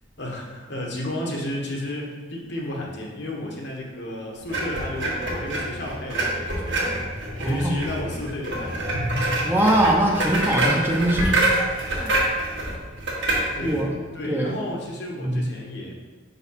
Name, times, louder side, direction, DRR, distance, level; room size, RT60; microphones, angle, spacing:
voice 1, 0.2-7.0 7.4-8.9 13.5-13.9 14.1-16.0, left 1 dB, 60° left, -1 dB, 1.2 m, -32 dB
sound 1, 4.5-13.8, right 1 dB, 60° right, 1.5 m, -26 dB
voice 2, 7.4-7.9 9.4-11.4 11.9-12.2 13.6-14.0 14.2-14.6 15.2-15.5, right 1 dB, 10° right, -1 dB, 0.7 m, -22 dB
5.3 x 4.1 x 5.6 m, 1.3 s
head